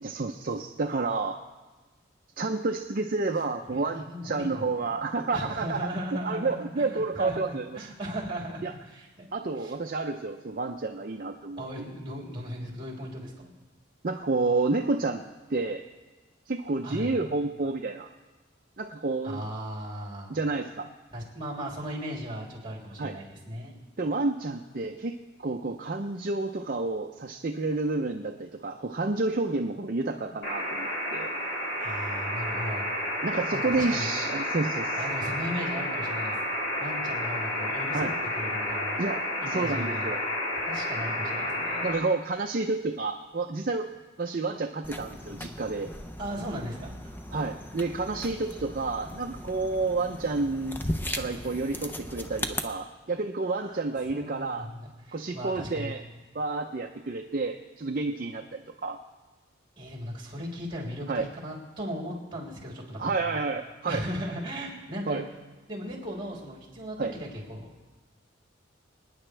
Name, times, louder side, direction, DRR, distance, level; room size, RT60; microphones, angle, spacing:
voice 1, 0.0-1.4 2.4-5.8 6.1-7.8 8.6-8.7 9.3-11.9 14.0-15.2 15.5-15.8 16.5-18.1 18.8-19.4 20.3-20.9 23.0-23.2 24.0-25.1 25.4-31.3 33.2-35.0 37.9-38.1 39.0-40.2 41.8-43.9 44.2-45.9 47.3-50.8 51.2-54.7 55.1-56.0 56.3-59.0 61.1-61.3 63.0-64.0 65.1-65.2 67.0-67.1, right 3 dB, 45° right, 4 dB, 0.5 m, -30 dB
voice 2, 3.7-4.9 5.3-9.3 9.6-9.8 11.6-13.5 16.8-17.2 19.2-20.4 21.1-23.7 31.8-32.9 33.5-34.1 35.0-36.3 36.8-38.1 38.3-39.0 39.4-40.1 40.6-41.9 46.2-47.2 53.6-55.9 59.8-63.4 63.9-65.2 65.7-67.7, equal, 25° right, -3 dB, 3.3 m, -37 dB
sound 1, 30.4-41.9, left 1 dB, 65° left, 3.3 m, -31 dB
sound 2, 44.8-52.6, left 1 dB, 10° left, 0.6 m, -37 dB
26.5 x 9.8 x 3.3 m, 1.2 s
head